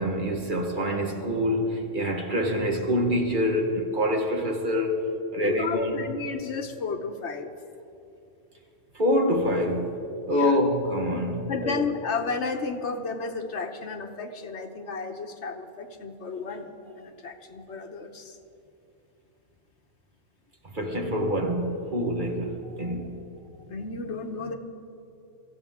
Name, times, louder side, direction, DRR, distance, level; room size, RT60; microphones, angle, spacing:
voice 1, 0.0-5.1 5.3-5.9 8.9-11.8 20.7-23.3, equal, 40° right, 1.6 m, -26 dB
voice 2, 5.4-7.5 10.3-10.6 11.5-18.4 22.8-23.0 23.7-24.6, left 4 dB, 65° left, 1.2 m, -33 dB
24.0 x 14.5 x 3.6 m
omnidirectional pair, 1.3 m